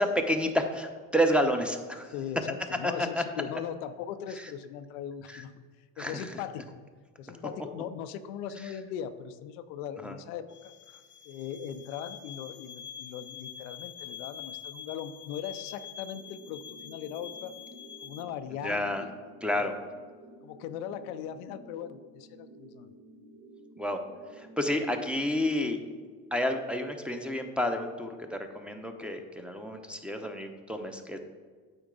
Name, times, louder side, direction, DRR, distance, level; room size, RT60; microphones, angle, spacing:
voice 1, 0.0-2.1 2.8-3.2 4.4-4.5 5.3-5.4 6.0-6.3 10.0-10.2 18.6-19.0 19.4-19.7 23.8-24.0 24.3-25.8 26.3-31.2, equal, 5° right, 3 dB, 0.7 m, -30 dB
voice 2, 2.1-5.5 6.0-6.8 7.2-10.7 11.2-17.5 18.0-19.1 20.4-22.9, left 9 dB, 85° left, 11 dB, 0.6 m, -39 dB
sound 1, 10.5-18.2, left 9 dB, 30° left, 0.4 m, -45 dB
sound 2, 16.1-26.1, right 1 dB, 65° right, 1.5 m, -52 dB
8.9 x 4.5 x 3.8 m, 1.5 s
supercardioid pair, 75°, 42 cm